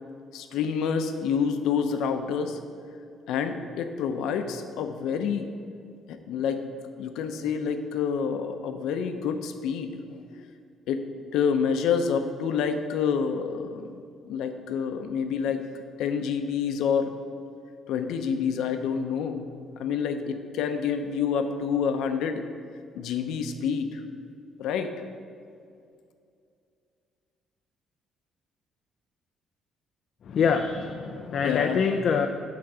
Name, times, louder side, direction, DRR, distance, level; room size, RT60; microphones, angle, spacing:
voice 1, 0.3-2.6 3.3-5.5 6.1-6.6 6.9-10.0 10.3-10.4 10.9-11.0 11.3-14.0 14.3-15.6 16.0-17.1 17.9-19.5 19.8-22.4 22.9-24.0 24.6-24.9 31.4-31.8, left 6 dB, 80° left, 7 dB, 0.7 m, -28 dB
voice 2, 30.3-32.3, left 6 dB, 45° left, 5 dB, 0.4 m, -25 dB
9.4 x 3.8 x 6.8 m, 2.4 s
cardioid pair, 175°, 0 cm